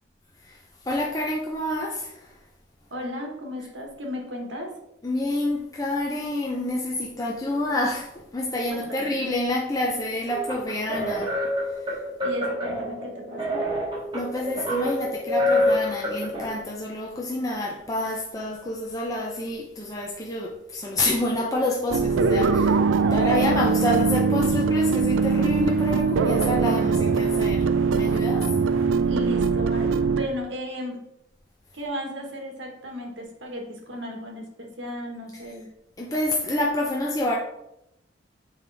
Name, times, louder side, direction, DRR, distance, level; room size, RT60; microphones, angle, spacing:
voice 1, 0.4-2.4 5.0-11.3 11.8-11.9 14.1-28.5 36.0-37.4, left 1 dB, 20° left, -2 dB, 0.6 m, -28 dB
voice 2, 2.9-4.7 8.7-9.2 12.2-13.6 23.0-23.2 29.0-31.0 31.7-35.7, left 1 dB, 70° right, 1 dB, 1.4 m, -35 dB
sound 1, 10.3-16.5, left 1 dB, 25° right, 2.0 m, -27 dB
sound 2, 21.9-30.3, right 5 dB, 90° right, 0.4 m, -22 dB
6.9 x 4.6 x 3.4 m, 0.85 s
head